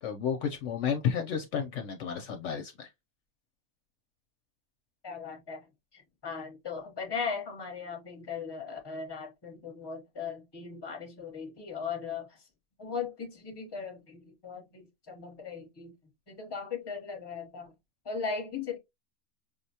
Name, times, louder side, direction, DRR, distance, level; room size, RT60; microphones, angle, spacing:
voice 1, 0.0-2.9, left 7 dB, 70° left, 0.8 m, -32 dB
voice 2, 5.0-12.5 12.8-17.8 18.0-18.8, left 5 dB, 20° left, 0.8 m, -38 dB
5.3 x 2.1 x 2.7 m
omnidirectional pair, 1.4 m